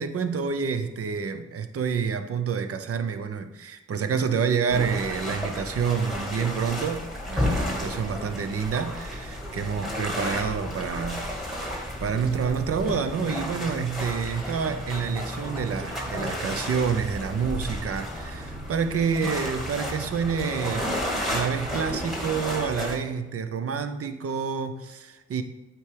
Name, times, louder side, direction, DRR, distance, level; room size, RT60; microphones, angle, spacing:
voice 1, 0.0-11.3 11.7-25.4, right 6 dB, 50° right, 9 dB, 0.7 m, -28 dB
sound 1, 4.7-23.0, left 1 dB, ahead, 2.1 m, -32 dB
8.0 x 4.6 x 3.4 m, 1.1 s
supercardioid pair, 50°, 29 cm